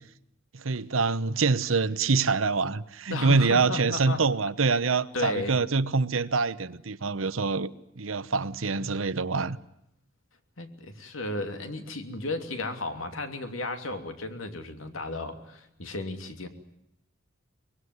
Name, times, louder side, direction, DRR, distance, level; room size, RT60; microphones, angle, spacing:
voice 1, 0.5-9.6, right 4 dB, 90° right, 1.0 m, -25 dB
voice 2, 3.1-4.2 5.1-5.5 10.6-16.5, left 2 dB, 85° left, 3.0 m, -34 dB
24.0 x 22.0 x 9.6 m
head